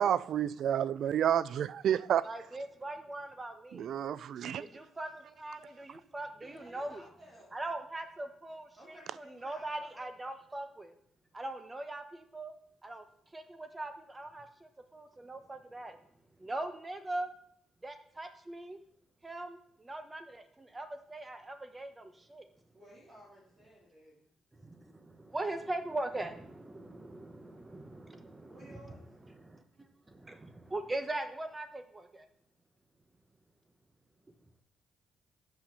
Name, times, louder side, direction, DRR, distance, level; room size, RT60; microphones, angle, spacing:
voice 1, 0.0-2.3 3.7-4.6, right 9 dB, 65° right, 0.3 m, -30 dB
voice 2, 2.2-3.9 4.6-7.0 7.5-10.9 11.3-12.5 12.8-13.0 13.3-16.0 16.4-17.3 17.8-18.8 19.2-22.5 24.6-29.0 29.3-29.6 30.1-32.3, right 2 dB, 20° right, 1.1 m, -41 dB
voice 3, 6.4-7.6 8.7-10.0 22.7-24.3 28.4-29.0, equal, 45° right, 2.6 m, -55 dB
5.9 x 5.5 x 6.8 m
cardioid pair, 90°, 0 cm